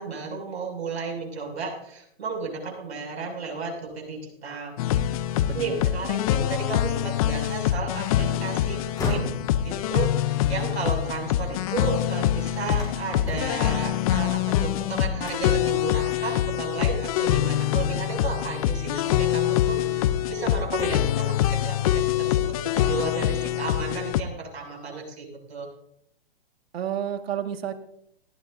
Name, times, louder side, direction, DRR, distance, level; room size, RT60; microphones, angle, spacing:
voice 1, 0.0-4.8 5.5-9.2 9.6-25.7, right 4 dB, 90° right, 1 dB, 6.8 m, -33 dB
sound 1, 4.8-24.2, left 12 dB, 35° left, 0.6 m, -25 dB
voice 2, 5.4-5.9 26.7-27.7, right 9 dB, 70° right, 6 dB, 2.0 m, -31 dB
sound 2, 8.9-11.9 12.3-14.7 15.2-15.7 16.1-16.2 16.8-17.3 18.5-18.6 19.2-20.4 20.7-21.3, left 2 dB, 10° left, 4.7 m, -37 dB
18.5 x 16.0 x 2.7 m, 0.73 s
hypercardioid pair, 150°, 32 cm